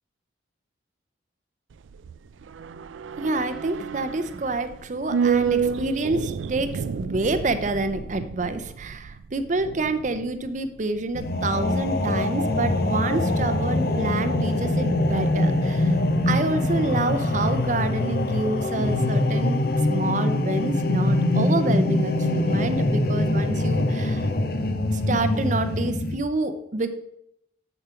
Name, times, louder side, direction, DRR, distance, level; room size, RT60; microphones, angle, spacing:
sound 1, 1.7-12.2 12.4-12.5, right 6 dB, 85° right, 0.4 m, -30 dB
voice 1, 3.2-16.0 16.3-19.6 19.9-24.3 24.9-26.9, right 2 dB, 40° right, 10 dB, 0.6 m, -28 dB
sound 2, 11.1-26.1, left 1 dB, 50° left, 0.7 m, -23 dB
7.1 x 6.9 x 5.7 m, 0.77 s
head